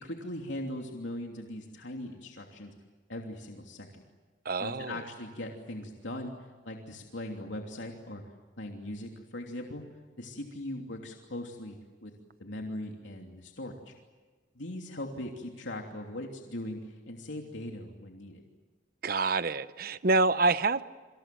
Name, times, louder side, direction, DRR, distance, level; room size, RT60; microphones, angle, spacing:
voice 1, 0.0-2.7 3.1-4.0 4.6-6.3 6.6-8.2 8.6-9.8 10.2-11.8 12.0-12.1 12.4-13.9 14.5-18.4, left 1 dB, 80° left, 1 dB, 3.0 m, -40 dB
voice 2, 4.4-5.0 19.0-20.8, right 3 dB, 50° right, 13 dB, 0.8 m, -27 dB
29.0 x 26.0 x 7.7 m, 1.4 s
head